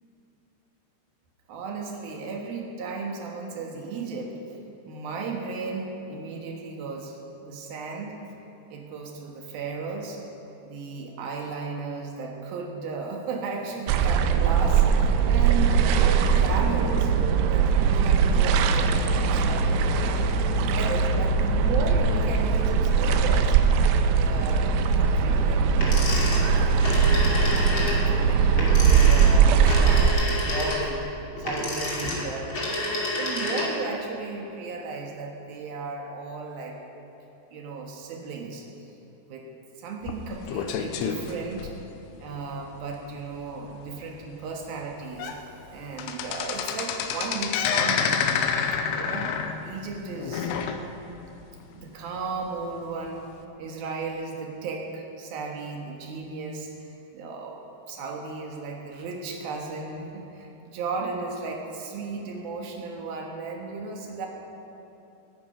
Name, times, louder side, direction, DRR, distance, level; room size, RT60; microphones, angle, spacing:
voice 1, 1.5-4.4 4.9-8.2 8.7-10.2 10.6-17.1 17.5-23.6 24.1-27.3 27.9-31.1 31.4-32.5 32.9-36.8 37.5-38.7 39.2-39.5 39.8-41.7 42.2-48.2 48.8-50.5 51.7-53.2 53.6-57.6 57.9-64.3, right 4 dB, 65° right, 0 dB, 2.6 m, -35 dB
sound 1, 13.9-30.1, right 6 dB, 80° right, 3.1 m, -21 dB
sound 2, 25.8-33.9, left 1 dB, 35° left, 2.1 m, -29 dB
sound 3, 40.0-42.2 42.7-42.9 43.2-43.3 43.9-44.0 44.6-44.7 45.0-45.4 45.7-51.2 51.6-51.7 52.5-52.6, left 7 dB, 85° left, 3.2 m, -28 dB
21.5 x 9.6 x 5.6 m, 3.0 s
omnidirectional pair, 5.8 m